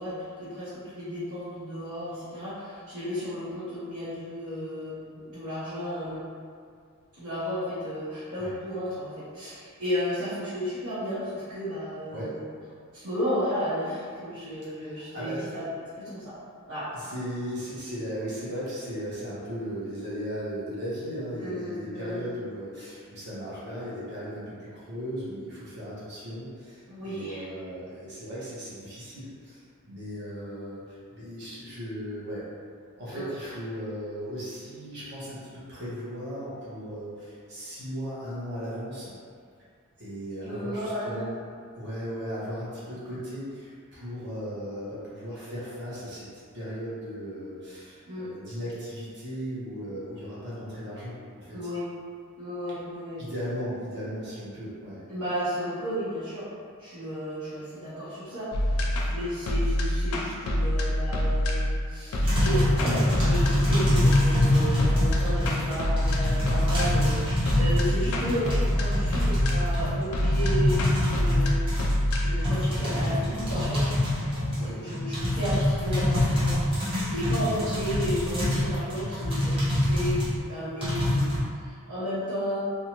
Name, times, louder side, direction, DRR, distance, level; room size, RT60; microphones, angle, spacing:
voice 1, 0.0-6.2 7.2-12.4 12.9-15.7 16.0-16.3 16.7-16.9 21.4-22.2 26.9-27.5 33.1-33.3 40.4-41.2 48.0-48.3 51.5-51.9 52.4-53.2 55.1-56.5 56.8-70.8 71.1-73.8 74.8-76.6 77.1-82.6, equal, 90° right, -15 dB, 1.0 m, -33 dB
voice 2, 14.8-15.5 16.9-32.4 33.0-39.1 40.0-41.4 41.7-46.3 46.5-51.7 52.7-52.8 53.2-55.0 74.6-74.8 77.5-77.8, equal, 55° right, -9 dB, 1.0 m, -37 dB
sound 1, 58.5-75.7, left 1 dB, 80° left, 0.4 m, -27 dB
sound 2, 62.2-80.3 80.8-81.4, left 1 dB, 25° right, 0.7 m, -26 dB
2.6 x 2.3 x 3.0 m, 2.2 s
head